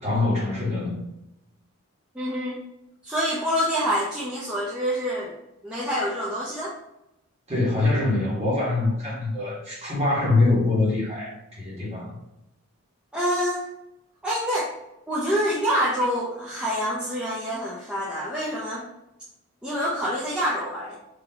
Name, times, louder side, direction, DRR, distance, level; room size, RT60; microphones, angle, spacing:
voice 1, 0.0-1.0 7.5-12.2, left 2 dB, 30° right, -6 dB, 1.4 m, -24 dB
voice 2, 2.1-2.6 3.0-5.3 5.6-6.7 13.1-13.6 14.2-14.7 15.1-18.8 19.6-20.9, equal, 5° right, -7 dB, 0.5 m, -26 dB
3.8 x 2.7 x 2.8 m, 0.86 s
head